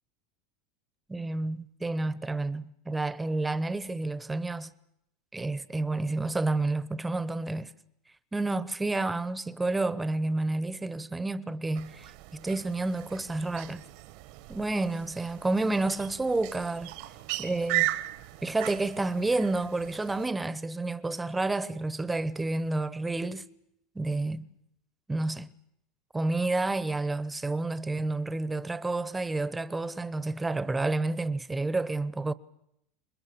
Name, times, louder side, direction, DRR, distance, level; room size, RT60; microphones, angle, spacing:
voice 1, 1.1-4.7 5.3-7.7 8.3-12.1 12.3-13.8 14.5-16.9 17.4-18.0 18.4-23.4 23.9-24.5 25.1-25.5 26.1-32.3, right 2 dB, 10° right, 1.0 m, -30 dB
sound 1, 11.7-20.3, right 19 dB, 65° right, 1.3 m, -37 dB
28.0 x 21.5 x 7.0 m
supercardioid pair, 115°, 0 cm